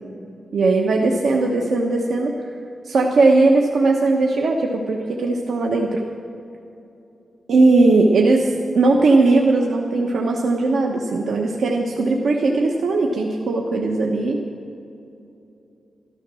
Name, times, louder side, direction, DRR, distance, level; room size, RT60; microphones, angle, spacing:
voice 1, 0.5-2.3 2.8-6.0 7.5-14.4, right 3 dB, 85° right, 0 dB, 1.1 m, -18 dB
14.0 x 13.0 x 6.3 m, 2.8 s
wide cardioid pair, 140°, 0 cm